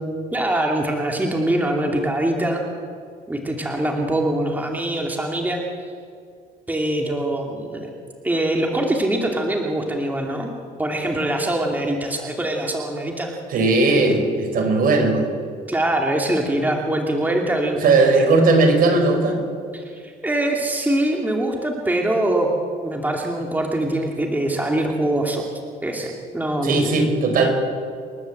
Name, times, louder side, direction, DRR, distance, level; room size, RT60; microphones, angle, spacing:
voice 1, 0.3-2.6 3.3-5.6 6.7-7.9 8.2-10.5 10.8-13.3 15.7-17.8 19.7-22.5 22.8-25.4 25.8-26.8, right 1 dB, 10° right, 1 dB, 2.6 m, -23 dB
voice 2, 13.5-15.3 17.8-19.4 26.6-27.5, right 3 dB, 60° right, 3 dB, 5.0 m, -17 dB
28.0 x 12.0 x 7.9 m, 2.2 s
cardioid pair, 110°, 17 cm